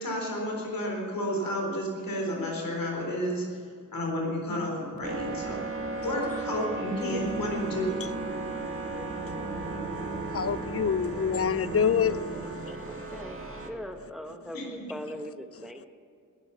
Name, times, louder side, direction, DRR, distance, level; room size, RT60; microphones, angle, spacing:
voice 1, 0.0-3.6 3.9-5.6 6.0-7.9 14.5-14.8, equal, 75° left, -1 dB, 4.0 m, -31 dB
sound 1, 5.0-13.7, right 3 dB, 40° right, 2.2 m, -35 dB
voice 2, 10.3-12.6, left 7 dB, 45° left, 17 dB, 0.5 m, -26 dB
voice 3, 12.9-13.3 13.7-15.9, equal, ahead, 6 dB, 1.0 m, -40 dB
18.5 x 11.5 x 6.9 m, 2.3 s
wide cardioid pair, 85°, 34 cm